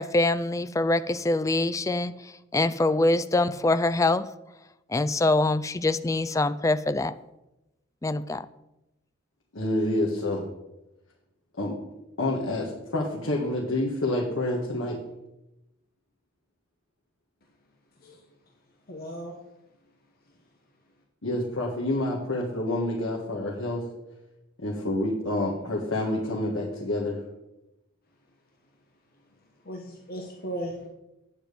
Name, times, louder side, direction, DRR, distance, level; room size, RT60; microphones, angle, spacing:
voice 1, 0.0-4.3 4.9-7.1 8.0-8.5, left 2 dB, 15° left, 13 dB, 0.3 m, -24 dB
voice 2, 9.5-10.5 11.6-11.8 12.2-15.0 21.2-23.8 24.6-27.2, left 1 dB, 75° left, -2 dB, 1.7 m, -28 dB
voice 3, 18.9-19.3 29.6-30.9, right 1 dB, 50° left, 0 dB, 1.3 m, -36 dB
9.0 x 8.9 x 5.1 m, 0.93 s
head